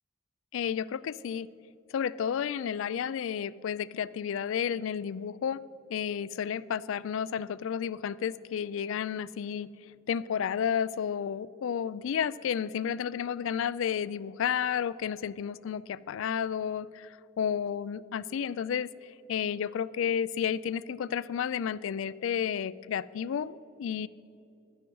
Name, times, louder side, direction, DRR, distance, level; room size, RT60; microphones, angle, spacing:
voice 1, 0.5-1.5 1.9-5.6 5.9-9.7 10.1-24.1, left 8 dB, 65° left, 19 dB, 0.3 m, -32 dB
12.0 x 9.7 x 4.7 m, 2.7 s
head